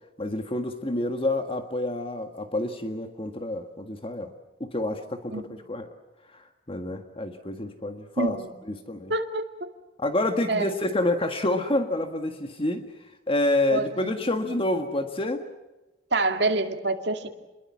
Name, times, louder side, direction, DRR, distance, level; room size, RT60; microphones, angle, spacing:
voice 1, 0.2-4.3 4.6-5.9 6.3-8.4 8.7-9.1 10.0-12.9 13.3-15.4, left 1 dB, 30° left, 6 dB, 1.6 m, -28 dB
voice 2, 8.2-8.5 9.1-9.7 10.5-10.7 13.7-14.6 16.1-17.3, right 2 dB, 65° right, 5 dB, 2.4 m, -27 dB
28.5 x 22.0 x 7.4 m, 1.1 s
head